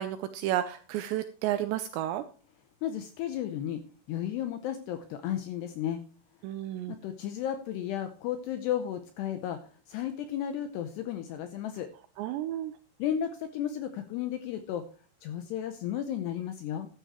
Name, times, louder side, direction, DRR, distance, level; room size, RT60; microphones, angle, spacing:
voice 1, 0.0-2.2 6.4-7.0 12.2-12.7, right 12 dB, 85° right, 10 dB, 2.6 m, -32 dB
voice 2, 2.8-3.8 4.1-6.0 6.9-11.9 13.0-14.8 15.2-16.9, left 10 dB, 85° left, 8 dB, 2.5 m, -33 dB
13.0 x 11.0 x 3.1 m, 0.36 s
omnidirectional pair, 5.7 m